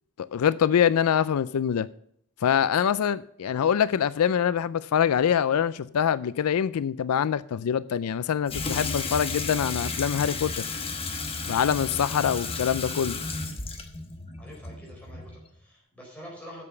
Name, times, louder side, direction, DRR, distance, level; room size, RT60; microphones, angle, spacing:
voice 1, 0.2-1.9 2.4-10.6 11.5-13.2, left 8 dB, 85° left, 17 dB, 0.4 m, -24 dB
Water tap faucet / Sink (filling or washing), 8.5-15.5, left 3 dB, 25° left, 1.0 m, -33 dB
voice 2, 14.4-16.6, equal, 5° left, -4 dB, 4.4 m, -46 dB
8.5 x 6.9 x 6.6 m, 0.69 s
head